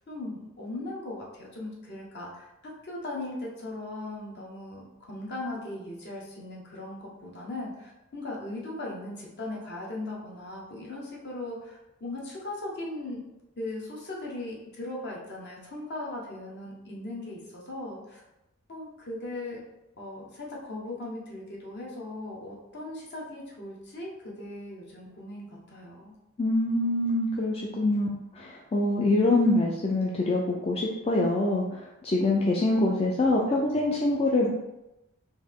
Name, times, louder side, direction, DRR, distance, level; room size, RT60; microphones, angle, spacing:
voice 1, 0.1-13.2 13.6-18.2 18.7-19.6 20.0-26.1, left 2 dB, 55° left, -3 dB, 1.2 m, -38 dB
voice 2, 26.4-28.1 28.4-34.5, left 2 dB, 30° left, -2 dB, 0.4 m, -25 dB
4.2 x 2.8 x 3.6 m, 0.93 s
head